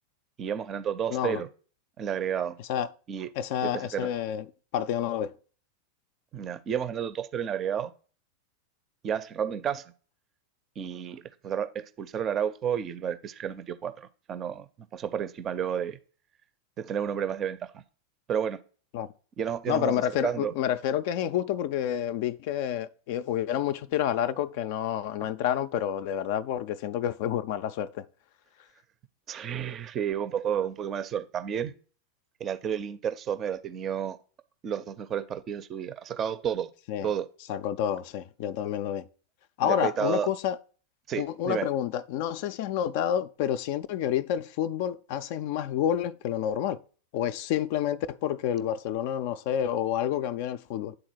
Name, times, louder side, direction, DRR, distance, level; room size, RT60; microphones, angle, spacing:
voice 1, 0.4-1.5 2.0-2.6 3.1-3.3 3.6-4.1 6.3-7.9 9.0-9.8 10.8-16.0 16.8-17.8 18.3-18.6 19.4-20.5 29.3-31.7 32.4-34.2 34.6-36.7 37.0-37.3 39.6-40.3 41.1-41.7, right 8 dB, 30° right, 0.5 m, -31 dB
voice 2, 1.1-1.4 2.7-2.9 3.4-4.4 4.7-5.3 18.9-19.1 19.7-28.1 36.9-37.1 37.5-39.1 39.6-40.6 41.2-46.8 47.1-51.0, left 10 dB, 50° left, 0.3 m, -29 dB
8.8 x 3.9 x 4.5 m
figure-of-eight pair, 90°, 0 cm